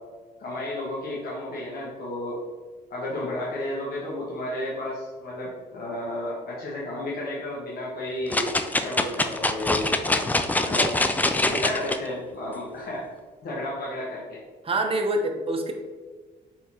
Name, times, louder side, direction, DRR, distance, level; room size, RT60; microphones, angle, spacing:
voice 1, 0.4-2.4 2.9-9.9 10.6-10.9 11.4-13.0 13.4-14.4, left 1 dB, 60° left, -6 dB, 1.1 m, -32 dB
sound 1, 8.3-12.0 12.5-12.6, left 2 dB, 10° left, 0.3 m, -24 dB
voice 2, 14.6-15.7, right 2 dB, 30° right, 4 dB, 0.7 m, -25 dB
4.3 x 3.7 x 2.8 m, 1.4 s
supercardioid pair, 70°, 18 cm